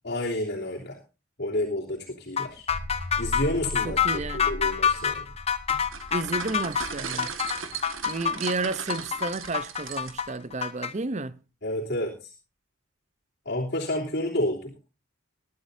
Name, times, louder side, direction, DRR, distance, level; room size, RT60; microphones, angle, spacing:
voice 1, 0.0-1.0 1.4-2.7 3.2-5.2 11.6-12.3 13.4-14.7, left 1 dB, 55° left, 3.1 m, -30 dB
sound 1, 2.4-10.9, left 7 dB, 30° left, 0.9 m, -27 dB
sound 2, 2.5-9.0, left 1 dB, 20° right, 7.6 m, -39 dB
voice 2, 3.8-4.4 6.1-7.3 8.1-11.4, right 3 dB, 35° right, 0.7 m, -31 dB
sound 3, 5.7-10.4, right 6 dB, 70° right, 1.8 m, -37 dB
21.0 x 12.5 x 2.7 m
head